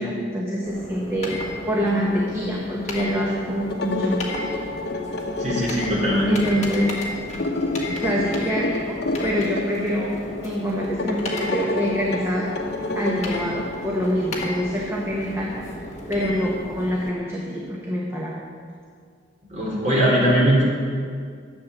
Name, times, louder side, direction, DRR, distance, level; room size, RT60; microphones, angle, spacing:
voice 1, 0.0-1.4 1.7-4.5 6.3-7.0 8.0-10.1 10.4-12.5 12.9-15.5 16.1-18.5, equal, 15° right, -3 dB, 1.1 m, -26 dB
sound 1, 0.6-17.1, left 1 dB, 35° left, 1.8 m, -34 dB
sound 2, 3.6-14.4, left 2 dB, 55° left, 1.0 m, -30 dB
voice 2, 5.4-6.4 19.5-20.6, equal, 35° right, -6 dB, 3.8 m, -20 dB
11.0 x 7.5 x 7.1 m, 2.1 s
head